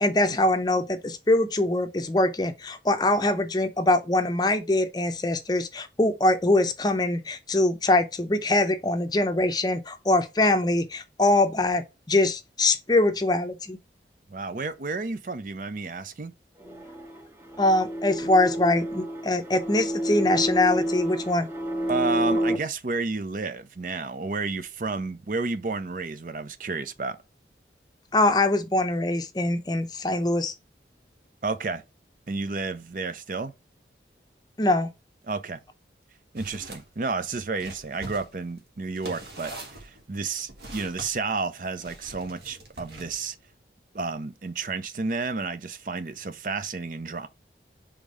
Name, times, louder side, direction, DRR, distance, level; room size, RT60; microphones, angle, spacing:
voice 1, 0.0-13.8 17.6-21.5 28.1-30.5 34.6-34.9, left 2 dB, 20° left, 0.6 m, -23 dB
voice 2, 14.3-16.3 21.9-27.2 31.4-31.8 32.3-33.5 35.3-35.6 36.3-43.4 43.9-47.3, right 3 dB, 50° right, 0.5 m, -31 dB
sound 1, 16.6-22.6, equal, 15° right, 0.8 m, -29 dB
sound 2, 36.3-36.8 37.2-41.1 41.8-43.3, right 2 dB, 70° right, 1.8 m, -43 dB
5.1 x 3.6 x 5.3 m
head